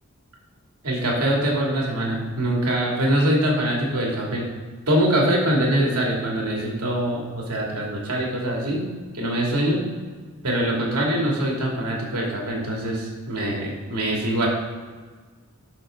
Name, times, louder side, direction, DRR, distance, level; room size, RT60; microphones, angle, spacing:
voice 1, 0.8-4.5 4.9-8.8 9.1-9.9 10.4-14.5, right 1 dB, 85° right, -2 dB, 2.7 m, -23 dB
12.5 x 6.3 x 3.9 m, 1.5 s
head